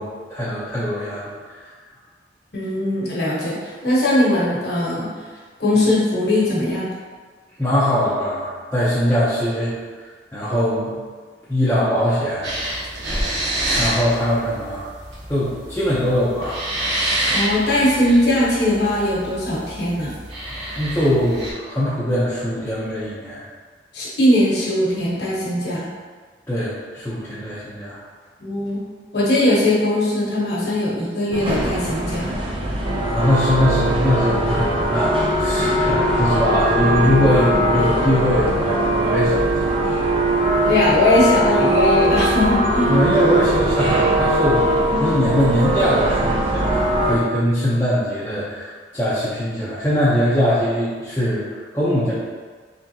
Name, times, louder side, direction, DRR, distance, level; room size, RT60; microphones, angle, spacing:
voice 1, 0.0-1.7 7.6-11.0 11.5-12.5 13.8-14.9 15.3-16.7 20.7-23.5 26.5-28.0 33.0-40.0 42.9-52.1, equal, 10° left, -11 dB, 0.7 m, -21 dB
voice 2, 2.5-5.1 5.6-6.9 17.3-20.1 23.9-25.9 28.4-28.8 29.1-32.3 40.7-42.9, left 1 dB, 65° left, -7 dB, 1.3 m, -19 dB
sound 1, 12.4-21.5, right 1 dB, 70° right, 1.0 m, -27 dB
sound 2, 31.3-47.2, right 1 dB, 30° right, 0.5 m, -20 dB
3.8 x 3.4 x 2.8 m, 1.5 s
head